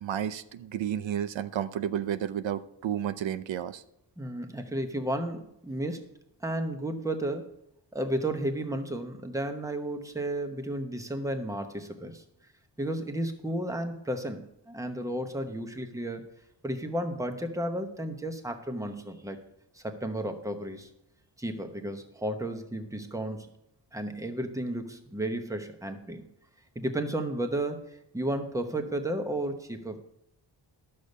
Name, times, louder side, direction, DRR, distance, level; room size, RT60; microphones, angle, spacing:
voice 1, 0.0-3.8, right 9 dB, 90° right, 13 dB, 0.7 m, -32 dB
voice 2, 4.2-6.0 6.4-7.5 7.9-12.2 12.8-16.2 16.6-19.4 19.7-20.9 21.4-23.5 23.9-26.3 26.7-27.8 28.1-30.0, right 1 dB, 5° right, 6 dB, 0.9 m, -33 dB
12.0 x 6.7 x 5.4 m, 0.80 s
wide cardioid pair, 150°, 44 cm